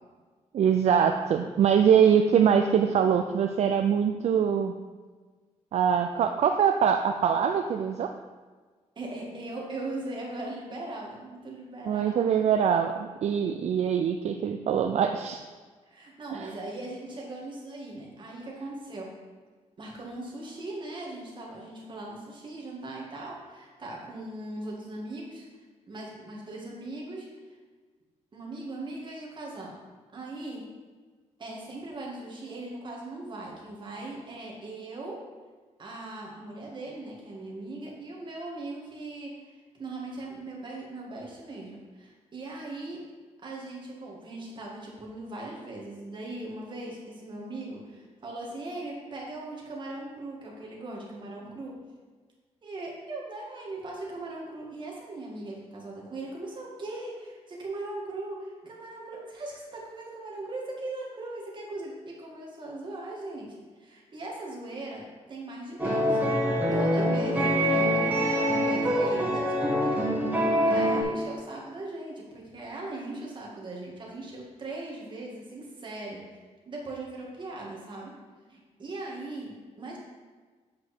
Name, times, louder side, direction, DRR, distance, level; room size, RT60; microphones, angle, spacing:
voice 1, 0.5-4.7 5.7-8.1 11.9-15.4 16.3-16.5, right 8 dB, 65° right, 6 dB, 0.4 m, -23 dB
voice 2, 9.0-12.0 15.9-19.1 19.8-25.5 25.9-27.3 28.3-29.8 30.1-30.6 31.4-35.2 35.8-43.0 43.4-51.7 52.6-65.0 65.3-76.2 76.7-78.1 78.5-80.0, right 2 dB, 40° right, -2 dB, 2.0 m, -39 dB
sound 1, 65.8-71.0, equal, 15° right, 1.9 m, -25 dB
8.1 x 5.0 x 4.4 m, 1.4 s
cardioid pair, 115°, 12 cm